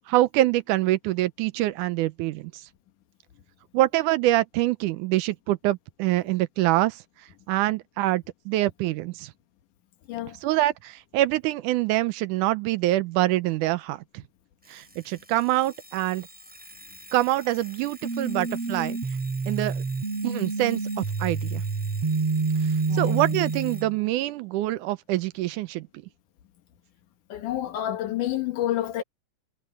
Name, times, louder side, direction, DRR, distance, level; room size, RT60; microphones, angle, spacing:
voice 1, 0.1-2.5 3.7-7.0 7.5-9.3 10.4-14.0 14.7-16.3 17.1-19.0 19.5-19.8 20.2-21.6 22.9-25.9, right 16 dB, 80° right, 2.1 m, -25 dB
Alarm, 14.6-23.9, left 1 dB, ahead, 5.8 m, -48 dB
sound 1, 18.0-24.0, right 4 dB, 50° right, 4.6 m, -28 dB
voice 2, 22.9-23.4 27.3-29.0, left 12 dB, 75° left, 2.8 m, -29 dB
omnidirectional pair, 3.7 m